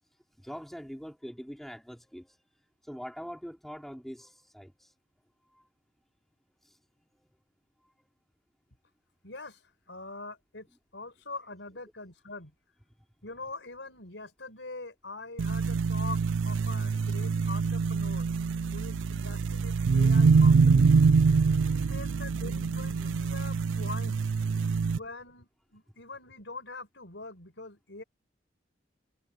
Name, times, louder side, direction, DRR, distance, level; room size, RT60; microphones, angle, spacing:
voice 1, 0.4-2.4 2.8-4.9 5.5-5.6 6.6-6.8 7.1-7.4 24.8-24.9, equal, ahead, 3.5 m, -43 dB
voice 2, 9.2-9.6 9.9-10.7 10.9-12.5 13.2-18.3 18.7-20.9 21.7-24.2 24.9-28.0, left 3 dB, 75° left, 4.7 m, -43 dB
sound 1, 15.4-25.0, right 5 dB, 85° right, 0.4 m, -25 dB
head